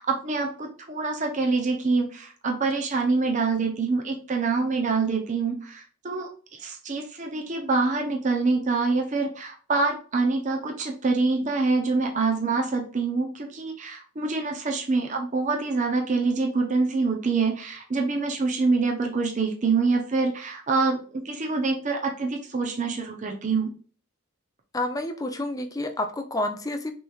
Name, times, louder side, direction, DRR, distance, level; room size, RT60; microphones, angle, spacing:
voice 1, 0.0-6.3 6.6-23.7, right 4 dB, 35° right, 2 dB, 0.6 m, -25 dB
voice 2, 24.7-26.9, left 1 dB, 15° left, 7 dB, 0.4 m, -29 dB
5.9 x 3.1 x 2.3 m, 0.40 s
head